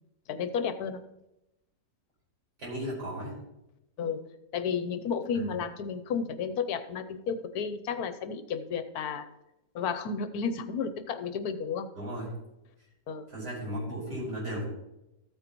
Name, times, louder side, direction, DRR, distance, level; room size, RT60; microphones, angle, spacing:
voice 1, 0.3-1.0 4.0-4.2 4.5-9.3 9.7-11.9 13.1-13.3, left 6 dB, 70° left, 9 dB, 1.2 m, -32 dB
voice 2, 2.6-3.4 11.9-12.3 13.3-14.7, equal, 80° right, -5 dB, 5.2 m, -35 dB
14.0 x 9.0 x 3.0 m, 0.90 s
omnidirectional pair, 1.7 m